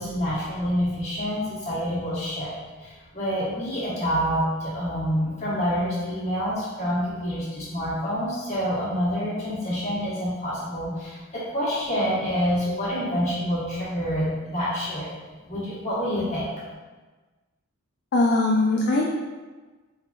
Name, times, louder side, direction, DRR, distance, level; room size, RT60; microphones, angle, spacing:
voice 1, 0.0-2.5 2.8-15.1 15.5-16.5, equal, 30° left, -9 dB, 1.2 m, -27 dB
voice 2, 18.1-19.1, left 2 dB, 50° left, -2 dB, 0.3 m, -21 dB
3.5 x 3.3 x 2.4 m, 1.3 s
head